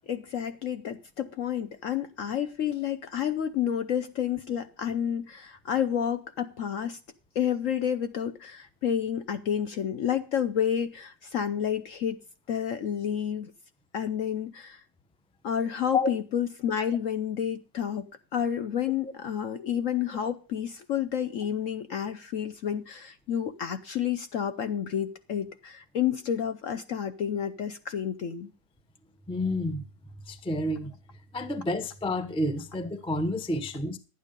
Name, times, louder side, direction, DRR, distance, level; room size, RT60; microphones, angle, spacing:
voice 1, 0.1-7.0 7.3-12.2 12.5-13.5 13.9-14.8 15.4-28.5, left 9 dB, 60° left, 0.9 m, -30 dB
voice 2, 29.3-29.8 30.3-31.0 31.3-34.0, left 1 dB, 5° left, 0.4 m, -29 dB
12.0 x 9.2 x 5.2 m
omnidirectional pair, 1.9 m